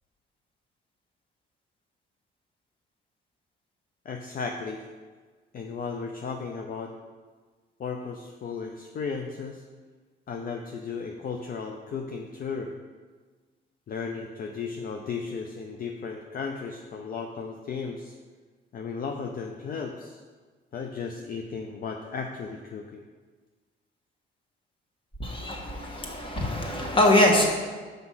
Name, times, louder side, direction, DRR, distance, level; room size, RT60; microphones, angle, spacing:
voice 1, 4.0-4.9 5.5-6.9 7.8-9.6 10.3-12.7 13.9-18.2 18.7-20.2 20.7-23.0, left 5 dB, 45° left, 3 dB, 0.6 m, -35 dB
voice 2, 25.2-27.5, left 1 dB, 25° left, 0 dB, 1.6 m, -23 dB
6.0 x 5.2 x 5.6 m, 1.4 s
cardioid pair, 90°, 20 cm